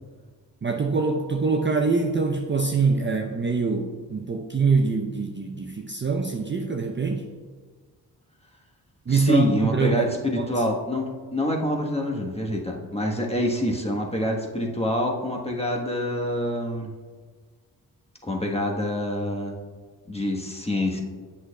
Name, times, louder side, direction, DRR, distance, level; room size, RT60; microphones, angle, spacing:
voice 1, 0.6-7.2 9.1-10.1 10.4-10.5, right 4 dB, 30° right, 2 dB, 0.6 m, -24 dB
voice 2, 9.1-16.9 18.2-19.5 20.1-21.0, left 1 dB, 15° left, 0 dB, 1.1 m, -26 dB
7.9 x 6.3 x 2.2 m, 1.5 s
supercardioid pair, 45°, 40 cm